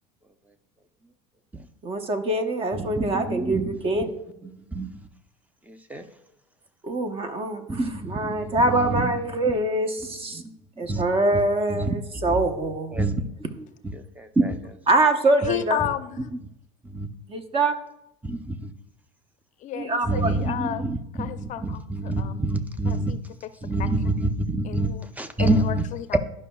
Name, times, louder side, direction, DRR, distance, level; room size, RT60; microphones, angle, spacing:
voice 1, 1.8-4.2 6.8-10.4 10.8-13.0 14.9-15.8 17.3-17.7 19.7-20.3, right 2 dB, 35° right, 7 dB, 0.9 m, -24 dB
voice 2, 2.7-3.7 4.4-4.9 5.7-6.0 7.7-9.1 10.3-10.4 10.9-11.0 11.7-11.9 12.2-12.4 12.9-13.1 13.9-14.7 16.9-17.1 18.2-18.7 20.1-23.1 23.6-24.9 25.2-25.8, right 2 dB, 10° right, 10 dB, 0.6 m, -27 dB
voice 3, 15.4-16.2 19.6-20.8 21.1-22.4 22.9-23.9 24.6-25.1 25.4-26.2, left 11 dB, 50° left, 11 dB, 0.5 m, -32 dB
12.0 x 5.4 x 2.3 m, 0.85 s
supercardioid pair, 100°, 17 cm